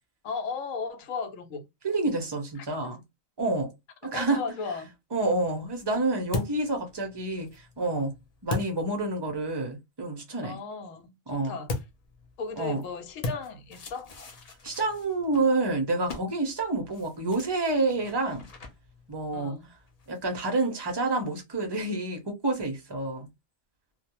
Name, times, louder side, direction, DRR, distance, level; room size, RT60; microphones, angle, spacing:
voice 1, 0.2-1.6 2.6-2.9 4.1-4.9 10.4-11.7 12.4-14.1 19.3-19.7, left 5 dB, 80° left, 1.0 m, -36 dB
voice 2, 1.8-3.0 3.4-3.7 4.0-4.4 5.1-8.1 8.4-10.6 11.3-11.6 12.6-12.8 14.6-18.5 19.1-19.6 20.1-23.3, right 2 dB, 30° right, 0.4 m, -28 dB
sound 1, 5.2-9.6 11.6-20.5, left 3 dB, 60° left, 0.4 m, -40 dB
2.3 x 2.2 x 2.8 m
omnidirectional pair, 1.4 m